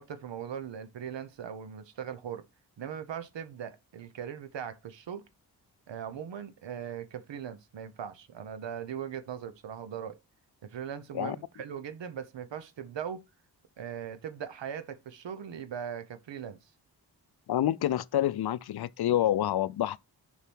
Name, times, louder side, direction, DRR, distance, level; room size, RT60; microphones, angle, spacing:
voice 1, 0.0-2.4 2.8-5.2 5.9-10.2 10.6-13.2 13.8-16.6, right 8 dB, 75° right, 1.0 m, -39 dB
voice 2, 17.5-20.0, left 12 dB, 60° left, 0.5 m, -27 dB
6.7 x 4.7 x 4.5 m
cardioid pair, 45°, 43 cm